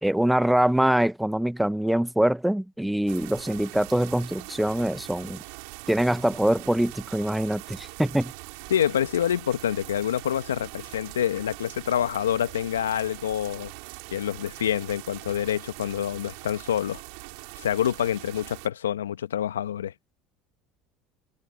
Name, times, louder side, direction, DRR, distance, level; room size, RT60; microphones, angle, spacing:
voice 1, 0.0-5.4 5.9-8.3, right 1 dB, 5° right, 1.1 m, -24 dB
sound 1, 3.1-18.7, right 35 dB, 70° right, 5.8 m, -42 dB
voice 2, 8.7-13.7 14.1-17.0 17.6-19.9, left 10 dB, 85° left, 1.2 m, -27 dB
hypercardioid pair, 70°, 0 cm